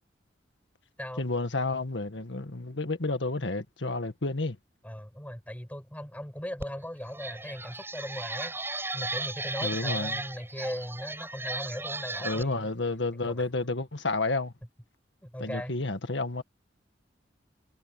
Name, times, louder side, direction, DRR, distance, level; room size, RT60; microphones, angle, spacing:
voice 1, 1.2-4.6 9.6-10.1 12.2-14.5 15.4-16.4, left 2 dB, 70° left, 1.8 m, -30 dB
voice 2, 4.8-8.6 8.9-12.7 13.2-13.5 15.2-15.8, equal, 10° left, 5.6 m, -38 dB
sound 1, 6.6-6.7 7.1-12.4, right 2 dB, 15° right, 7.2 m, -35 dB
head